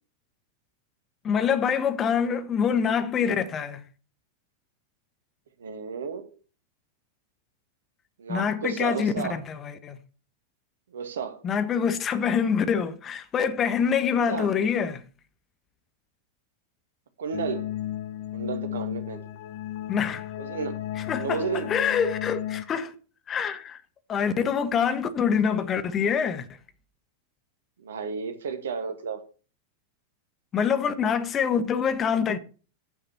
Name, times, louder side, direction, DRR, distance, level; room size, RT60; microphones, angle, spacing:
voice 1, 1.2-3.8 8.3-10.0 11.4-15.0 19.9-20.3 21.0-22.9 23.3-23.8 24.1-26.5 30.5-32.4, left 7 dB, 25° left, 1.3 m, -25 dB
voice 2, 5.6-6.3 8.2-9.4 10.9-11.4 14.3-14.5 17.2-17.7 18.3-19.2 20.4-20.8 21.1-21.7 27.8-29.2, right 5 dB, 65° right, 1.7 m, -32 dB
sound 1, 17.3-22.6, left 12 dB, 50° left, 0.9 m, -34 dB
9.8 x 5.5 x 7.1 m
figure-of-eight pair, 90°, 0 cm